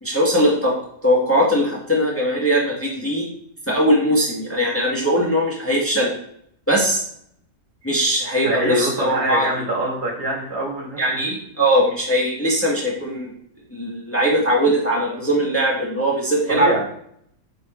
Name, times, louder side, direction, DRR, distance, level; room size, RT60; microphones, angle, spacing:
voice 1, 0.0-0.7 1.0-3.3 3.7-6.1 6.7-7.0 7.8-9.5 11.0-13.3 13.7-16.8, equal, 10° left, -3 dB, 1.6 m, -20 dB
voice 2, 8.3-11.3 16.5-16.8, right 1 dB, 65° right, -1 dB, 2.4 m, -24 dB
8.0 x 4.8 x 4.4 m, 0.68 s
omnidirectional pair, 1.8 m